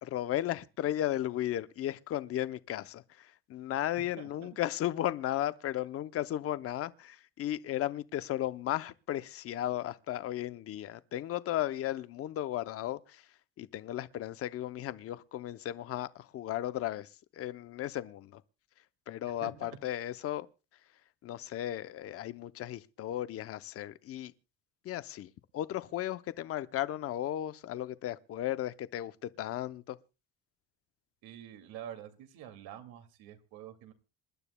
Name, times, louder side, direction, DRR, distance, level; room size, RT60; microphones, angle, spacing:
voice 1, 0.0-13.3 13.6-18.4 19.1-20.5 21.2-24.3 24.8-30.0, left 13 dB, 40° left, 0.7 m, -35 dB
voice 2, 4.2-4.5 19.2-19.8 31.2-33.9, right 10 dB, 85° right, 2.4 m, -47 dB
27.5 x 12.0 x 2.2 m
cardioid pair, 170°, 35 cm